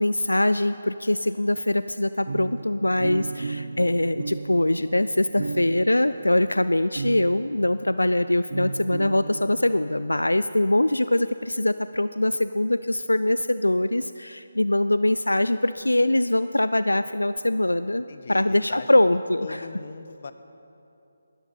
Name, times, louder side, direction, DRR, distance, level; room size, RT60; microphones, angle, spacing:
voice 1, 0.0-19.7, left 1 dB, 85° left, 13 dB, 0.3 m, -23 dB
sound 1, 2.3-8.1 8.5-10.4, right 3 dB, 60° right, 0.7 m, -35 dB
voice 2, 18.1-18.9 19.4-20.3, left 4 dB, 50° left, 10 dB, 0.9 m, -39 dB
19.0 x 13.5 x 4.4 m, 2.7 s
figure-of-eight pair, 150°, 0 cm